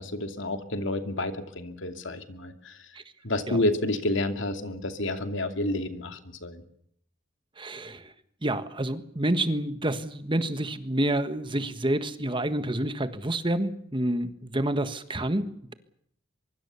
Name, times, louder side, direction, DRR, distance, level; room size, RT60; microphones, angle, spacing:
voice 1, 0.0-2.8 3.2-6.6, left 1 dB, 60° left, 7 dB, 2.7 m, -30 dB
voice 2, 7.6-8.1 8.4-15.7, right 1 dB, 25° right, 10 dB, 1.5 m, -28 dB
24.0 x 23.5 x 7.0 m, 0.69 s
head